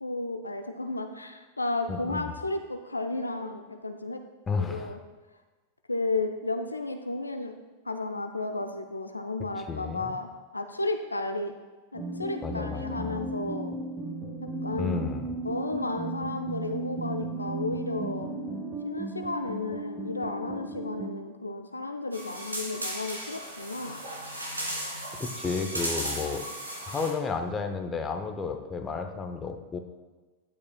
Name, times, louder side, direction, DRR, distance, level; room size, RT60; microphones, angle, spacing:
voice 1, 0.0-4.2 4.6-5.0 5.9-7.5 7.9-10.3 10.5-11.5 11.9-13.8 14.4-15.1 15.4-18.3 18.8-24.0, left 2 dB, 80° left, 6 dB, 0.5 m, -33 dB
voice 2, 1.9-2.3 4.5-5.0 9.5-10.2 12.4-13.3 14.8-15.3 25.2-26.4 26.8-29.8, left 4 dB, 20° left, 6 dB, 0.8 m, -32 dB
sound 1, 11.9-21.1, right 3 dB, 15° right, 1.1 m, -35 dB
sound 2, 22.1-27.1, right 1 dB, 85° right, 2.2 m, -35 dB
11.5 x 8.5 x 2.3 m, 1.3 s
figure-of-eight pair, 90°, 0 cm